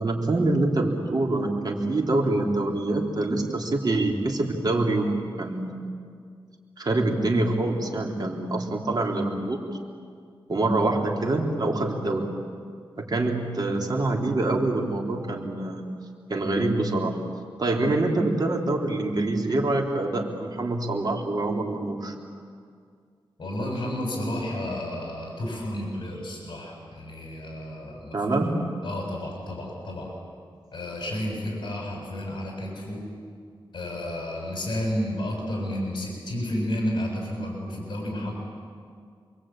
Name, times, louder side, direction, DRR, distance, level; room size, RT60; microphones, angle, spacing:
voice 1, 0.0-5.7 6.8-9.6 10.5-12.2 13.0-15.9 16.3-17.2 17.6-22.1 28.1-28.7, right 2 dB, 50° right, 0 dB, 3.7 m, -25 dB
voice 2, 23.4-28.4 28.8-30.1 30.7-33.0 33.7-38.3, left 1 dB, 55° left, -1 dB, 7.1 m, -31 dB
27.5 x 23.0 x 9.0 m, 2.2 s
wide cardioid pair, 110°, 9 cm